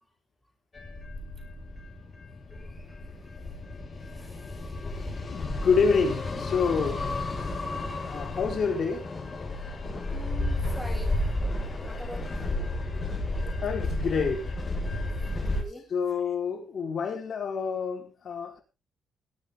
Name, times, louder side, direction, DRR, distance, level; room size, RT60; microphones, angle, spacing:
sound 1, 0.7-15.6, left 2 dB, 35° left, 5.9 m, -32 dB
voice 1, 2.5-3.0 4.1-4.7 5.4-5.5 10.1-11.4 11.7-12.7 15.1-15.9, right 1 dB, 5° right, 5.6 m, -45 dB
voice 2, 5.3-7.1 8.0-9.1 13.4-14.6 15.9-18.6, left 5 dB, 60° left, 4.6 m, -28 dB
20.5 x 9.3 x 3.9 m
cardioid pair, 80°, 0 cm